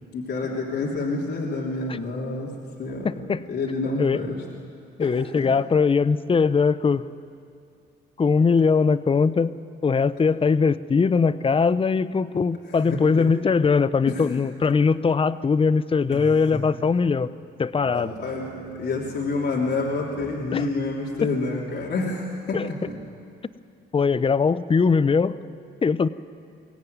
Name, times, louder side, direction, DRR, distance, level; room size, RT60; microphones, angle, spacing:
voice 1, 0.1-2.5 2.8-4.4 5.0-5.5 12.7-13.3 14.1-14.2 16.1-16.6 17.9-22.6, left 3 dB, 60° left, -3 dB, 3.1 m, -28 dB
voice 2, 3.0-3.4 4.0-4.2 5.0-7.1 8.2-9.6 9.8-17.3 17.6-18.1 20.5-20.7 21.2-21.3 22.5-22.7 23.9-25.3 25.8-26.1, left 5 dB, 25° left, 16 dB, 0.7 m, -21 dB
sound 1, 17.1-23.1, right 4 dB, 65° right, 2.6 m, -44 dB
22.5 x 17.0 x 9.4 m, 2.5 s
cardioid pair, 90°, 20 cm